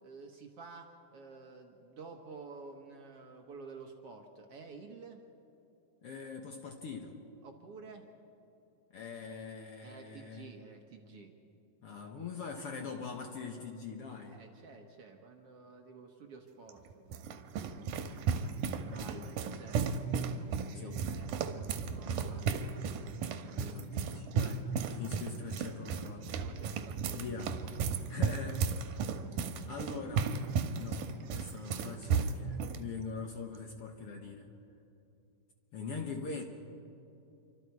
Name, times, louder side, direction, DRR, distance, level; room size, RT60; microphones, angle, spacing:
voice 1, 0.0-5.2 7.4-8.1 9.8-11.3 14.3-17.3 18.9-19.9 20.6-22.9 26.3-27.4, right 4 dB, 55° right, 3 dB, 2.0 m, -51 dB
voice 2, 6.0-7.2 8.9-10.5 11.8-14.4 18.9-19.3 20.7-21.0 22.0-22.4 23.6-24.6 24.9-26.3 27.1-27.5 28.1-28.7 28.9-29.0 29.7-30.3 30.8-34.5 35.7-36.4, left 5 dB, 60° left, 3 dB, 1.7 m, -43 dB
sound 1, 16.7-32.8, right 6 dB, 85° right, 2.6 m, -34 dB
27.5 x 25.0 x 4.7 m, 2.8 s
omnidirectional pair, 3.7 m